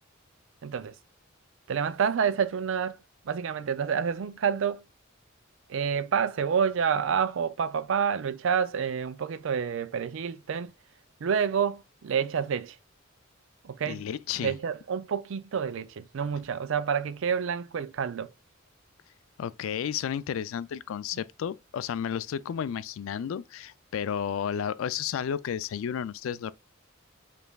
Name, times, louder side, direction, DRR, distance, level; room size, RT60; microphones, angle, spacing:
voice 1, 0.6-1.0 1.7-3.0 3.2-4.8 5.7-10.7 11.2-12.8 13.6-14.0 14.4-18.3, right 7 dB, 70° right, 0.4 m, -28 dB
voice 2, 13.9-14.6 19.4-26.5, left 8 dB, 75° left, 0.3 m, -32 dB
5.1 x 3.3 x 2.3 m
head